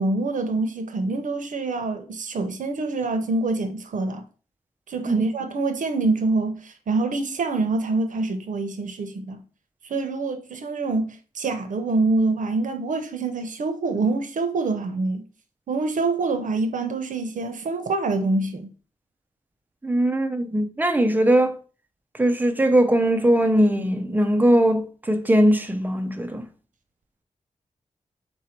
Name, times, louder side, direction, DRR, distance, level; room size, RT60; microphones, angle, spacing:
voice 1, 0.0-4.2 4.9-9.4 9.9-15.2 15.7-18.7, right 3 dB, 75° right, 0.7 m, -25 dB
voice 2, 19.8-21.6 22.2-26.4, right 1 dB, 15° right, 0.4 m, -20 dB
4.1 x 2.7 x 4.3 m
wide cardioid pair, 165°, 13 cm